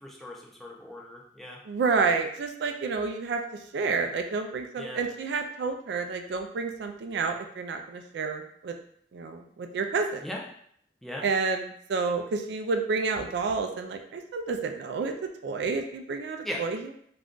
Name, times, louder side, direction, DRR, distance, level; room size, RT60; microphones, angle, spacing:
voice 1, 0.0-1.6 4.8-5.0 10.2-10.4 11.0-11.2 16.4-16.6, left 1 dB, ahead, -2 dB, 0.4 m, -38 dB
voice 2, 1.7-3.4 3.7-8.7 9.1-10.3 11.2-15.1 15.4-16.9, right 4 dB, 70° right, 5 dB, 0.3 m, -29 dB
2.5 x 2.2 x 3.6 m, 0.66 s
head